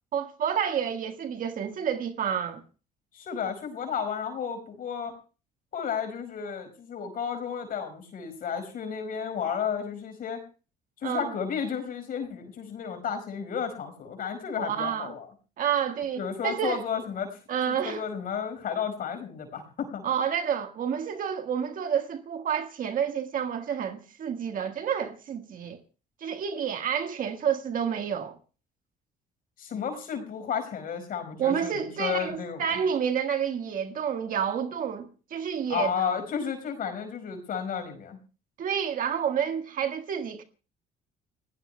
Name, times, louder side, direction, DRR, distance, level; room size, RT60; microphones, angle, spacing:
voice 1, 0.1-2.6 11.0-11.4 14.6-15.1 15.6-16.8 17.5-18.0 20.0-25.8 26.2-28.4 31.4-36.2 38.6-40.4, right 8 dB, 55° right, 1.6 m, -29 dB
voice 2, 3.1-5.1 5.7-10.4 11.0-15.3 16.2-17.4 17.7-20.0 29.6-32.8 35.7-38.2, left 7 dB, 55° left, 5.2 m, -32 dB
30.0 x 17.0 x 2.3 m
cardioid pair, 110°, 17 cm